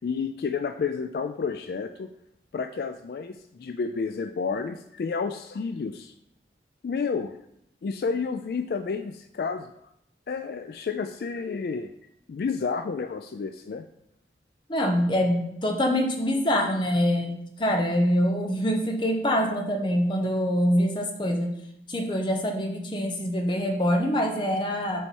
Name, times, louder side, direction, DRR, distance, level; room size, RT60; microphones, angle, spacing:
voice 1, 0.0-2.1 2.5-6.1 6.8-7.4 7.8-9.7 10.3-11.9 12.3-13.9, left 5 dB, 60° left, 8 dB, 0.3 m, -30 dB
voice 2, 14.7-21.5 21.9-25.1, equal, 25° left, 2 dB, 0.9 m, -25 dB
6.9 x 4.5 x 4.5 m, 0.77 s
head